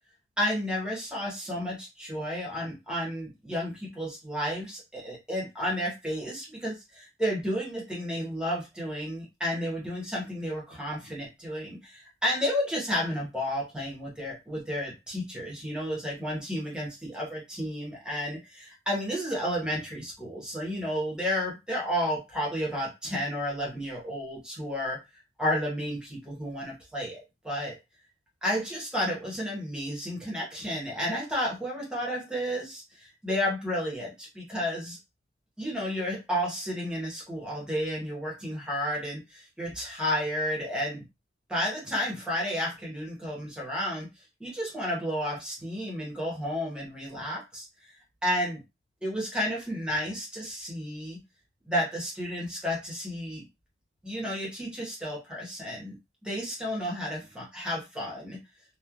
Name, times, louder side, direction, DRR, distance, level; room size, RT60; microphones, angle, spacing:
voice 1, 0.4-25.0 25.4-27.8 28.4-35.0 35.6-41.0 41.5-44.1 44.4-47.9 48.2-48.6 49.0-51.2 51.6-53.4 54.0-55.9 56.2-58.4, equal, 5° right, -4 dB, 1.0 m, -32 dB
3.1 x 2.2 x 2.4 m, 0.24 s
head